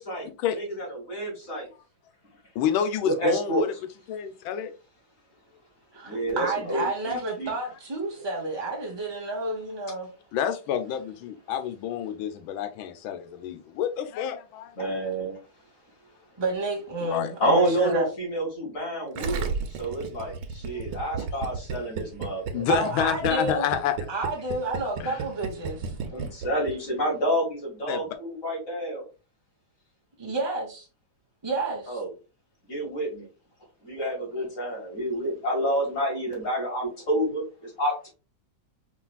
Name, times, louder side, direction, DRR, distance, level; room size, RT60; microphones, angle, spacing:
voice 1, 0.5-1.7 3.0-3.7 6.0-7.5 14.8-15.4 17.4-22.6 26.1-29.0 31.9-32.1 32.7-33.3 33.8-38.1, right 1 dB, 40° left, 2.3 m, -28 dB
voice 2, 2.5-3.7 4.1-4.7 10.3-14.7 17.0-17.3 20.7-20.8 22.5-24.0 25.0-25.2 27.9-28.0, left 9 dB, 90° left, 1.4 m, -28 dB
voice 3, 5.9-10.1 16.4-18.1 22.7-23.6 24.1-25.9 30.2-30.9 31.4-32.0, right 2 dB, 35° right, 0.4 m, -30 dB
Gurgling, 19.2-26.7 27.0-27.1, right 5 dB, 85° right, 1.5 m, -33 dB
4.8 x 3.2 x 2.3 m
omnidirectional pair, 2.2 m